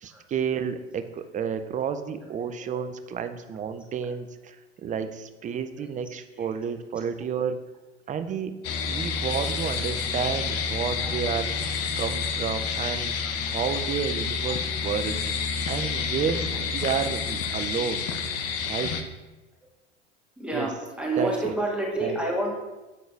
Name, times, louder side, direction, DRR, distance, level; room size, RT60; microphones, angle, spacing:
voice 1, 0.0-7.6 8.1-8.6 8.9-11.5 12.0-13.2 13.5-15.1 15.7-18.1 18.7-18.9 20.5-20.7 21.2-21.5 22.0-22.2, right 7 dB, 20° right, 9 dB, 0.5 m, -31 dB
sound 1, 8.6-19.0, left 5 dB, 45° left, 0.8 m, -29 dB
voice 2, 20.4-22.5, right 2 dB, 5° right, -2 dB, 1.9 m, -29 dB
7.1 x 4.0 x 4.6 m, 1.1 s
hypercardioid pair, 85°, 35 cm